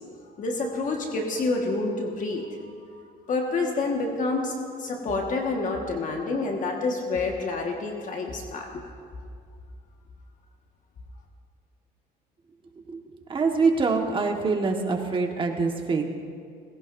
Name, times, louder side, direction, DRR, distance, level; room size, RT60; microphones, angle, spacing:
voice 1, 0.4-2.5 3.3-4.5 4.8-8.9, left 3 dB, 50° left, 1 dB, 1.6 m, -28 dB
voice 2, 13.3-16.0, right 4 dB, 30° right, 3 dB, 1.5 m, -24 dB
18.5 x 16.5 x 2.6 m, 2.2 s
cardioid pair, 110°, 17 cm